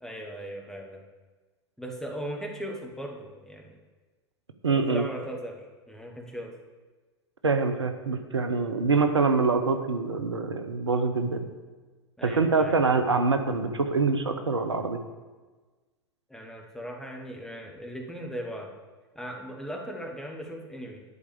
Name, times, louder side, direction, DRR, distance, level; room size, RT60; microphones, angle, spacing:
voice 1, 0.0-1.0 1.8-3.8 4.7-6.5 12.2-12.8 16.3-18.7 19.1-21.0, right 1 dB, 5° left, 0 dB, 1.7 m, -38 dB
voice 2, 4.6-5.0 7.4-11.4 12.2-15.0, right 4 dB, 80° right, 7 dB, 0.8 m, -25 dB
11.0 x 4.7 x 7.0 m, 1.3 s
figure-of-eight pair, 90°, 14 cm